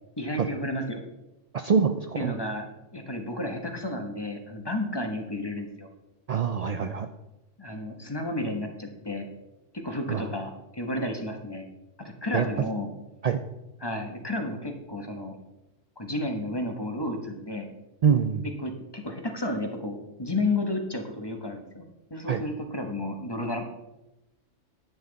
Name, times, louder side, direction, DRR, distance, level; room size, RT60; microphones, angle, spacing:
voice 1, 0.2-1.0 2.1-2.7 2.9-5.9 6.8-6.9 7.6-9.3 9.7-11.7 12.0-12.9 13.8-15.4 16.0-17.7 18.4-23.7, left 1 dB, 20° left, 4 dB, 1.2 m, -32 dB
voice 2, 1.5-2.3 6.3-7.1 10.1-10.3 12.3-12.5 13.2-13.4 18.0-18.4 22.3-22.4, right 7 dB, 80° right, 8 dB, 0.3 m, -24 dB
10.5 x 8.8 x 4.0 m, 0.96 s
omnidirectional pair, 1.3 m